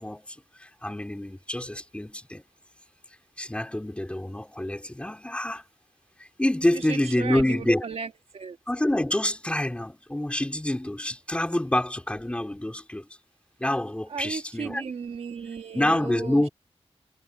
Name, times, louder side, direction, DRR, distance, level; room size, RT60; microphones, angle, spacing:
voice 1, 0.0-2.4 3.4-5.6 6.2-7.8 8.7-13.1 13.6-14.8 15.7-16.5, left 1 dB, 10° left, 3.5 m, -27 dB
voice 2, 6.7-8.6 14.1-16.5, right 6 dB, 75° right, 1.9 m, -36 dB
wide cardioid pair, 105°, 11 cm